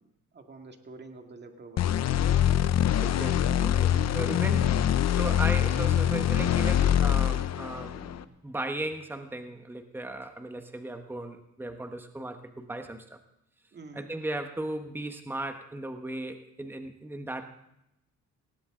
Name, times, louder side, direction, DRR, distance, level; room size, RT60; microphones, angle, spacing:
voice 1, 0.3-2.0 13.7-14.1, right 3 dB, 35° right, 4 dB, 2.1 m, -47 dB
sound 1, 1.8-8.2, left 10 dB, 60° left, 0.8 m, -24 dB
voice 2, 3.0-4.8 5.1-13.2 13.9-17.4, right 1 dB, 5° right, 7 dB, 1.2 m, -36 dB
19.5 x 17.0 x 3.8 m, 0.84 s
cardioid pair, 90°, 30 cm